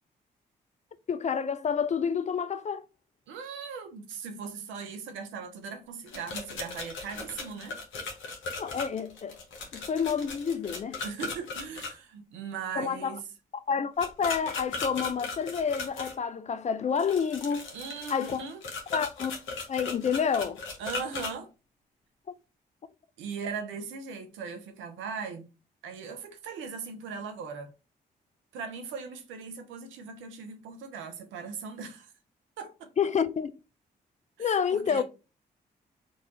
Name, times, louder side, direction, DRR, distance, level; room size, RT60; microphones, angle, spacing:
voice 1, 1.1-2.8 8.6-9.4 9.7-11.0 12.8-13.1 13.5-17.7 18.1-18.4 18.9-19.3 19.7-20.6 33.0-33.5 34.4-35.0, left 6 dB, 35° left, 0.4 m, -29 dB
voice 2, 3.3-7.8 11.0-13.2 17.7-18.6 20.8-21.5 23.2-25.5 25.8-27.7 28.5-32.1 32.6-32.9 34.4-35.0, right 5 dB, 75° right, 0.7 m, -39 dB
sound 1, 6.1-11.9 14.0-16.1 17.0-21.3, left 4 dB, 70° left, 0.9 m, -37 dB
3.8 x 2.4 x 2.8 m
hypercardioid pair, 40°, 20 cm